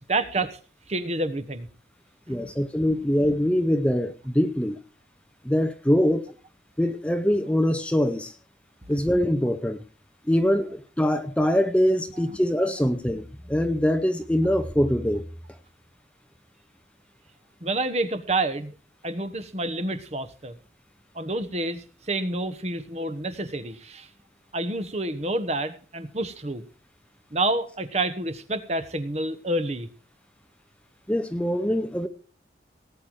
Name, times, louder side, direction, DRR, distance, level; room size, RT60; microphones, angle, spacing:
voice 1, 0.1-0.6 0.9-1.7 2.3-2.5 17.6-18.7 19.0-20.5 21.1-24.1 24.5-26.7 27.3-29.9, right 2 dB, 35° right, 1.3 m, -28 dB
voice 2, 2.3-4.8 5.4-6.3 6.8-8.3 8.9-9.8 10.3-15.2 31.1-32.1, equal, 5° left, 0.7 m, -23 dB
18.5 x 9.2 x 4.7 m
head